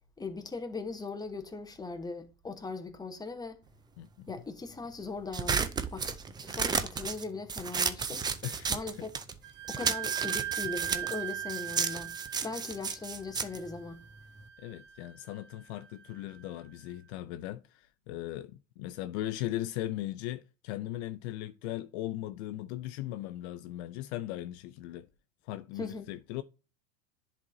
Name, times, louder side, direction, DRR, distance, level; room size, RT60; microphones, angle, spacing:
voice 1, 0.2-3.6 4.3-6.2 6.4-8.2 8.7-9.2 9.7-12.2 12.4-14.0 25.8-26.1, left 3 dB, 10° left, 1.0 m, -39 dB
voice 2, 4.0-4.3 8.4-9.1 9.8-9.9 14.6-25.1 25.4-26.4, left 14 dB, 55° left, 0.5 m, -38 dB
sound 1, 5.3-9.4 9.7-14.5, right 6 dB, 10° right, 0.3 m, -33 dB
Wind instrument woodwind instrument, 9.4-16.9, right 13 dB, 25° right, 1.2 m, -40 dB
10.5 x 4.2 x 2.7 m
hypercardioid pair, 95°, 40 cm